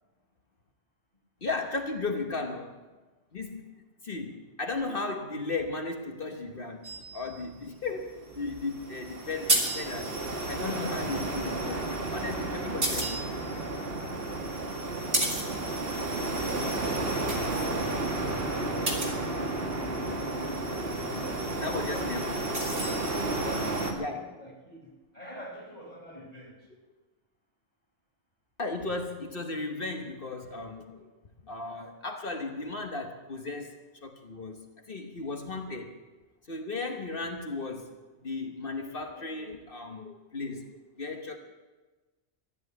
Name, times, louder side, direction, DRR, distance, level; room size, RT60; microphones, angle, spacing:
voice 1, 1.4-2.8 3.3-13.2 16.2-16.7 21.6-22.2 24.0-24.3 28.6-31.1 31.4-36.0 36.5-41.4, left 3 dB, 50° left, 4 dB, 1.4 m, -36 dB
sound 1, 6.8-10.6 12.1-20.1 21.4-23.8, right 1 dB, 80° right, 3.0 m, -35 dB
voice 2, 7.5-7.9 17.0-18.9 19.4-20.6 21.0-22.5 23.3-26.6, equal, 35° left, -2 dB, 4.4 m, -46 dB
sound 2, 8.3-23.9, right 2 dB, 55° right, 2.2 m, -32 dB
14.0 x 10.5 x 8.1 m, 1.2 s
omnidirectional pair, 1.2 m